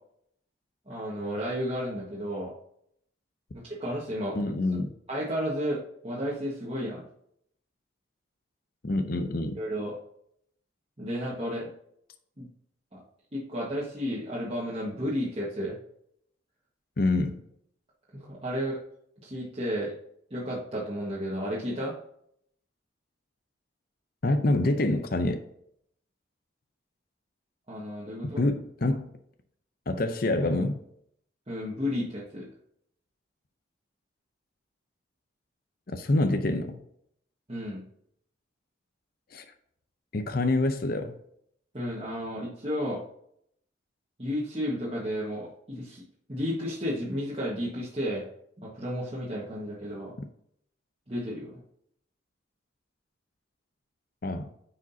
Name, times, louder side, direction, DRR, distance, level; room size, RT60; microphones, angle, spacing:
voice 1, 0.9-2.5 3.6-4.5 5.1-7.0 9.6-9.9 11.0-11.7 12.4-12.5 12.9-13.0 13.3-15.8 18.2-18.8 19.2-19.9 20.3-22.0 27.7-28.4 31.5-32.5 37.5-37.8 41.7-43.0 44.2-46.0 46.3-48.3 48.6-50.1 51.1-51.6, equal, 30° right, 1.4 m, -32 dB
voice 2, 4.3-4.9 8.8-9.5 17.0-17.4 24.2-25.4 28.2-29.1 29.9-30.8 35.9-36.8 39.3-39.5 40.1-41.2 54.2-54.5, left 2 dB, 50° left, 0.6 m, -26 dB
9.6 x 5.0 x 2.7 m
head